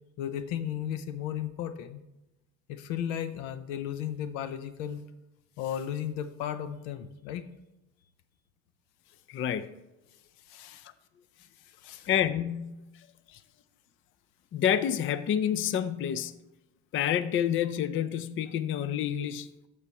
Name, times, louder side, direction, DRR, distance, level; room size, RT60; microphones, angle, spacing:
voice 1, 0.2-2.0 2.7-5.0 5.6-7.5 10.5-10.9 11.7-12.1 13.3-13.4, left 10 dB, 85° left, 0.7 m, -35 dB
voice 2, 9.3-9.7 12.1-12.9 14.5-16.4 16.9-19.5, left 9 dB, 35° left, 0.4 m, -28 dB
13.5 x 4.9 x 2.9 m
supercardioid pair, 100°, 37 cm